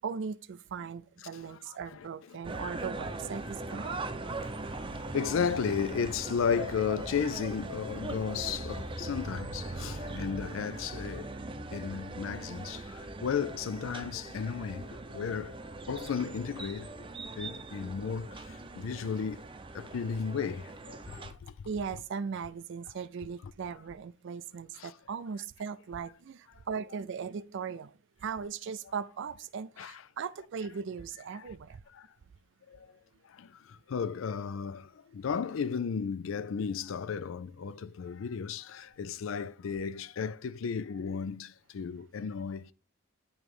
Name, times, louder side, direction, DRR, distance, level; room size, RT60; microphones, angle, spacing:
voice 1, 0.0-4.0 21.7-27.9 28.2-31.8, right 6 dB, 65° right, 0.4 m, -38 dB
voice 2, 1.3-2.1 2.5-2.6 3.8-11.4 11.7-15.6 15.9-16.9 17.4-19.4 19.7-21.5 23.4-23.5 24.7-24.9 29.8-30.0 31.3-31.5 31.9-32.1 32.7-32.9 33.3-42.7, left 6 dB, 70° left, 0.4 m, -34 dB
sound 1, 2.4-21.3, right 2 dB, 25° right, 0.6 m, -40 dB
8.9 x 3.1 x 4.8 m
head